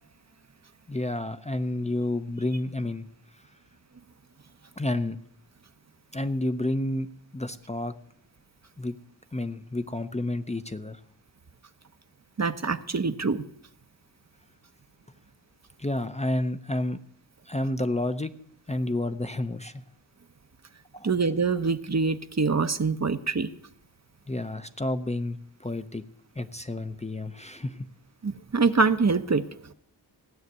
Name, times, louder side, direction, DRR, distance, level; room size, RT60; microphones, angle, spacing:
voice 1, 0.9-3.1 4.8-5.2 6.1-7.1 7.3-7.9 8.8-9.0 9.3-11.0 15.8-17.0 17.5-18.3 18.7-19.8 20.9-21.1 24.3-26.0 26.4-27.8, left 1 dB, 15° left, 9 dB, 0.7 m, -30 dB
voice 2, 12.4-13.4 21.0-23.5 28.2-29.5, right 4 dB, 40° right, 10 dB, 0.8 m, -25 dB
16.0 x 6.6 x 9.4 m, 0.70 s
cardioid pair, 50°, 43 cm